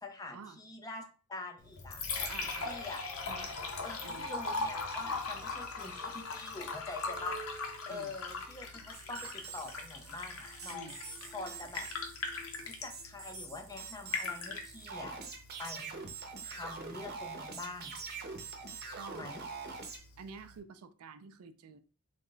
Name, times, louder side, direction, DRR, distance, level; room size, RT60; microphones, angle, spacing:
voice 1, 0.0-2.3 2.6-3.0 3.8-7.4 7.9-10.9 11.3-11.9 12.7-15.2 15.6-16.0 16.4-17.9 19.1-19.4, left 3 dB, 15° left, 0.5 m, -45 dB
Liquid, 1.6-20.6, left 3 dB, 75° left, 0.7 m, -41 dB
voice 2, 2.3-2.8 3.3-3.5 4.0-4.3 7.9-8.2 10.7-11.0 18.9-19.3 20.2-21.8, right 5 dB, 90° right, 0.4 m, -49 dB
sound 1, 8.9-20.0, right 4 dB, 45° right, 0.7 m, -45 dB
3.5 x 2.2 x 3.8 m
head